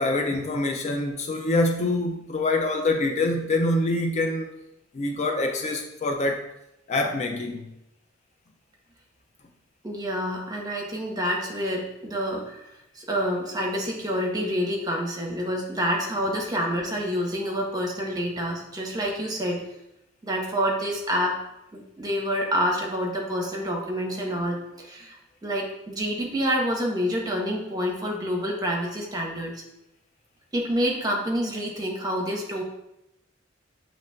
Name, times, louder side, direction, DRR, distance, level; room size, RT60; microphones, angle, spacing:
voice 1, 0.0-4.5 4.9-6.4 6.9-7.7, left 2 dB, 35° left, 3 dB, 0.4 m, -25 dB
voice 2, 9.8-12.6 12.9-19.6 20.2-21.4 21.7-29.6 30.5-32.6, equal, 20° right, 0 dB, 0.8 m, -28 dB
7.5 x 2.9 x 2.2 m, 0.86 s
head